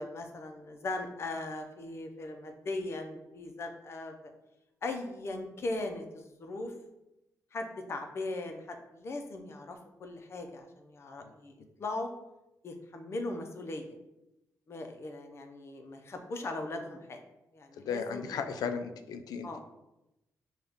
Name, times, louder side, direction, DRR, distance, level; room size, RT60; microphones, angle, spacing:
voice 1, 0.0-4.3 4.8-6.7 7.5-11.5 11.8-12.1 12.6-13.9 14.7-17.2 17.5-18.4 19.4-19.6, left 2 dB, 45° left, 4 dB, 0.6 m, -39 dB
voice 2, 17.9-19.6, left 6 dB, 90° left, 8 dB, 0.4 m, -35 dB
5.4 x 2.3 x 3.5 m, 0.92 s
cardioid pair, 120°, 6 cm